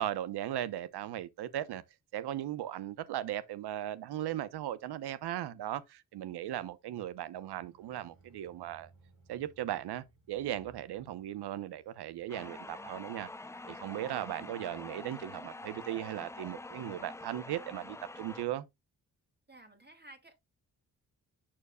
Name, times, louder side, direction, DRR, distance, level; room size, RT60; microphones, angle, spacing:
voice 1, 0.0-1.8 2.1-8.9 9.3-13.3 13.7-18.7, right 12 dB, 75° right, 0.8 m, -37 dB
sound 1, 7.5-14.3 15.0-15.4 15.7-15.8 16.3-17.6, right 2 dB, 50° right, 4.4 m, -64 dB
sound 2, 12.3-18.5, left 2 dB, 10° left, 0.4 m, -46 dB
voice 2, 13.9-14.6 19.5-20.3, right 1 dB, 25° right, 2.3 m, -55 dB
8.6 x 6.4 x 2.2 m
supercardioid pair, 45°, 40 cm